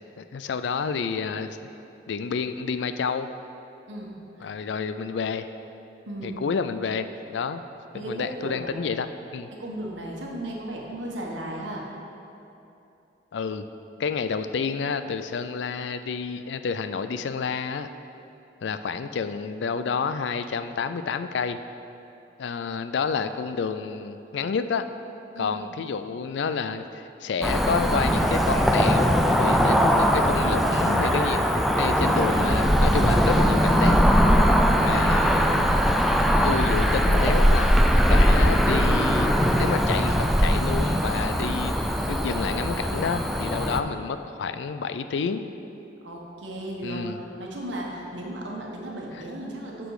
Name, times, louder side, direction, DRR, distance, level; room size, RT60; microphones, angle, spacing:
voice 1, 0.2-1.6 2.1-3.3 4.4-5.5 6.2-7.6 7.9-9.1 9.3-9.5 13.3-13.7 14.0-17.9 18.6-21.6 22.4-24.9 25.4-34.0 34.8-35.8 36.4-37.8 38.1-45.4 46.8-47.2 49.1-49.2, left 5 dB, 70° left, 10 dB, 0.4 m, -29 dB
voice 2, 3.9-4.5 6.1-6.4 7.9-9.0 9.6-11.8 25.3-25.6 43.8-44.1 46.0-47.0 47.4-49.9, right 1 dB, 80° right, -2 dB, 1.3 m, -35 dB
Cricket / Motor vehicle (road), 27.4-43.8, equal, ahead, 0.3 m, -20 dB
8.1 x 6.1 x 4.8 m, 2.8 s
head